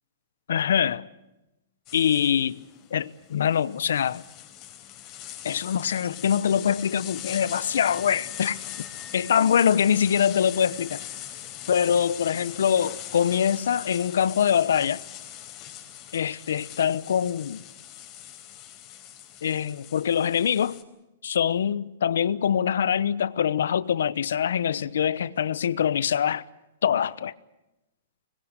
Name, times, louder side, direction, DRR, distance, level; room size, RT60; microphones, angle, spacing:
voice 1, 0.5-1.0 1.9-2.6 2.9-4.2 5.4-8.9 9.1-11.0 11.7-15.0 16.1-17.6 19.4-20.8 21.2-26.4 26.8-27.3, left 8 dB, 80° left, 0.9 m, -24 dB
sound 1, 1.9-20.8, left 11 dB, 35° left, 4.3 m, -41 dB
Wind instrument woodwind instrument, 5.5-11.9, left 4 dB, 15° left, 4.8 m, -55 dB
25.5 x 21.0 x 8.0 m
hypercardioid pair, 130°, 0 cm